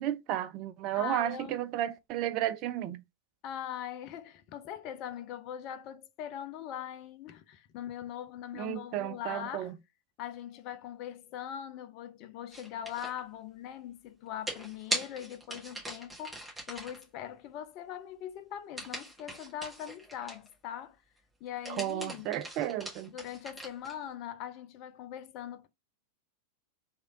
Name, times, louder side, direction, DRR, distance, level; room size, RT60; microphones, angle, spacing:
voice 1, 0.0-3.0 8.5-9.7 21.7-23.1, right 12 dB, 40° right, 0.4 m, -33 dB
voice 2, 0.9-1.6 3.4-9.7 10.2-21.0 21.4-22.3 23.1-25.7, left 10 dB, 40° left, 0.4 m, -41 dB
sound 1, 12.5-13.2 14.5-17.0 18.8-20.5 21.5-24.0, right 1 dB, 10° right, 1.3 m, -40 dB
3.0 x 2.4 x 2.8 m
figure-of-eight pair, 90°, 0 cm